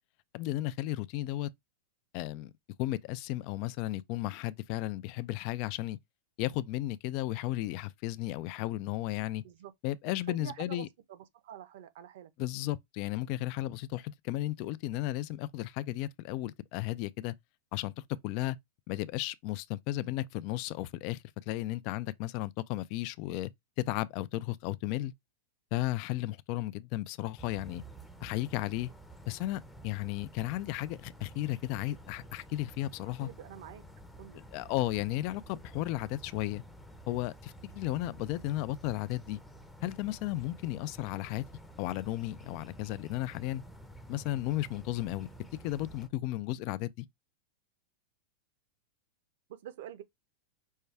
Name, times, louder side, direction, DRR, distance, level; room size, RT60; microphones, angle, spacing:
voice 1, 0.3-1.5 2.1-2.5 2.8-6.0 6.4-9.4 9.8-10.9 12.4-17.3 17.7-17.9 18.2-18.6 18.9-23.5 23.9-25.1 25.7-27.8 28.2-28.9 29.3-33.3 34.5-36.6 37.1-39.4 39.8-41.4 41.8-43.6 44.1-45.3 45.6-47.1, left 16 dB, 45° left, 0.4 m, -34 dB
voice 2, 10.3-12.3 33.2-33.8 34.2-34.4 49.5-50.0, right 11 dB, 65° right, 0.8 m, -46 dB
sound 1, 27.4-46.1, right 1 dB, 5° left, 0.7 m, -51 dB
5.4 x 2.3 x 3.3 m
supercardioid pair, 145°, 0 cm